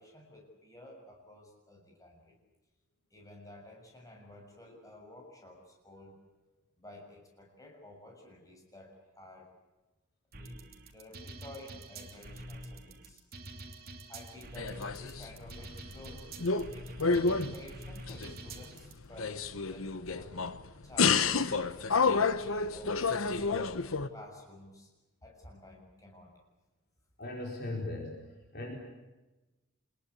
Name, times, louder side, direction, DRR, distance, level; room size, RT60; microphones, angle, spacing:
voice 1, 0.0-2.4 3.1-6.1 6.8-9.5 10.3-10.6 10.9-13.2 14.1-16.3 16.7-20.4 20.8-23.8 24.1-24.9 25.2-26.3, left 1 dB, 15° left, 0 dB, 7.2 m, -52 dB
sound 1, 10.3-18.9, right 1 dB, 45° right, 3.3 m, -46 dB
sound 2, 14.6-15.6 15.9-16.7 17.0-18.6 19.0-20.6 21.0-24.1, left 4 dB, 75° left, 1.1 m, -29 dB
voice 2, 27.2-28.2 28.5-28.7, left 2 dB, 50° left, 0 dB, 4.7 m, -38 dB
27.0 x 21.5 x 8.4 m, 1.1 s
head